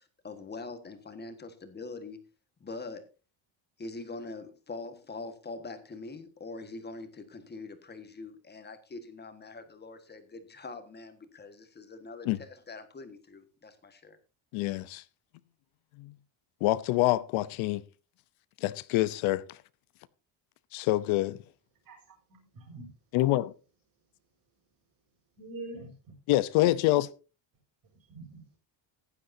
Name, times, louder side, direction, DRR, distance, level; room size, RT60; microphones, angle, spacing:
voice 1, 0.0-2.2 2.6-3.1 3.8-14.2, left 3 dB, 20° left, 1.5 m, -43 dB
voice 2, 14.5-15.0 16.0-16.2 16.6-17.8 18.6-19.6 20.7-21.4 23.1-23.5 26.3-27.1, left 16 dB, 85° left, 0.8 m, -26 dB
voice 3, 21.9-22.9 25.4-25.9 28.1-28.6, right 2 dB, 45° right, 5.3 m, -45 dB
16.0 x 11.0 x 2.7 m
cardioid pair, 155°, 47 cm